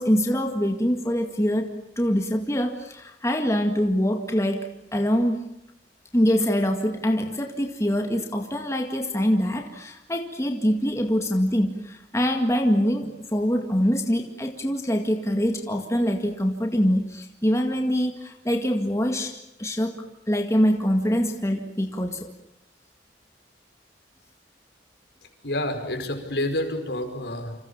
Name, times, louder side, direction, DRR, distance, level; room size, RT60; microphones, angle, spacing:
voice 1, 0.0-5.4 6.1-22.3, equal, 15° left, 4 dB, 2.0 m, -24 dB
voice 2, 25.4-27.6, left 1 dB, 65° left, 7 dB, 5.2 m, -28 dB
29.0 x 26.5 x 7.1 m, 0.79 s
head